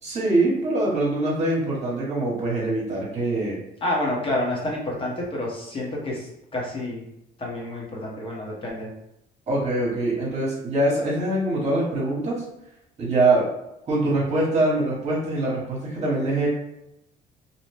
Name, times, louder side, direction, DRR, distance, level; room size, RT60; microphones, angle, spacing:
voice 1, 0.0-3.6 9.5-12.4 13.0-13.5 13.9-16.5, right 2 dB, 40° right, -5 dB, 1.1 m, -23 dB
voice 2, 3.8-7.0 7.4-8.9, left 1 dB, 30° left, -3 dB, 1.0 m, -29 dB
2.8 x 2.2 x 3.3 m, 0.82 s
cardioid pair, 110°, 17 cm